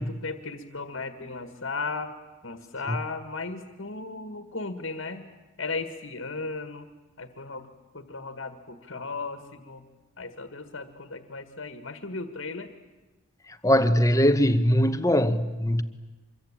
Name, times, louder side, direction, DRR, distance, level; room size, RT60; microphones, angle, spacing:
voice 1, 0.0-2.1 2.4-5.2 5.6-6.9 7.2-7.7 7.9-9.8 10.2-12.7, left 3 dB, 70° left, 1.8 m, -36 dB
voice 2, 13.6-15.8, equal, 15° left, 1.1 m, -21 dB
26.0 x 22.5 x 8.9 m
head